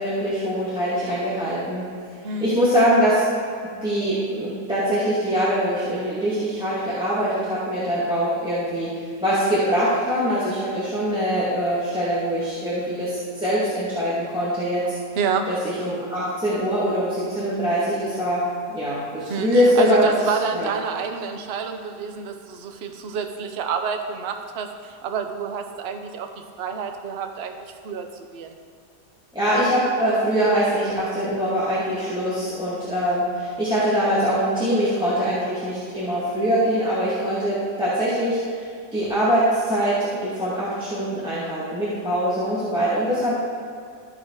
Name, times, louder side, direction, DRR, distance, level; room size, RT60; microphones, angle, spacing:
voice 1, 0.0-1.9 2.2-3.2 3.8-14.9 15.5-18.4 18.7-20.1 20.5-20.7 29.3-38.6 38.9-43.4, equal, 5° right, -11 dB, 2.0 m, -23 dB
voice 2, 2.2-2.6 15.2-15.5 19.3-26.3 26.6-27.5 27.8-28.0 28.3-28.5, right 6 dB, 55° right, 5 dB, 0.7 m, -28 dB
14.0 x 5.0 x 4.8 m, 2.3 s
omnidirectional pair, 1.9 m